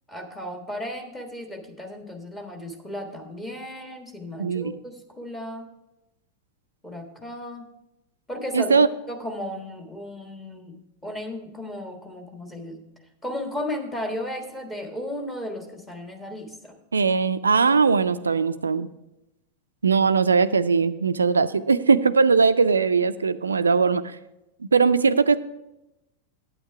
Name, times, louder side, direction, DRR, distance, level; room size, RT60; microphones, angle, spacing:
voice 1, 0.1-5.7 6.8-7.6 8.3-12.8 13.2-16.8, left 1 dB, 10° left, 4 dB, 1.4 m, -35 dB
voice 2, 4.4-4.7 8.5-8.9 16.9-18.9 19.8-24.0 24.6-25.4, right 5 dB, 75° right, 14 dB, 0.3 m, -20 dB
8.9 x 8.8 x 4.6 m, 0.91 s
figure-of-eight pair, 90°, 0 cm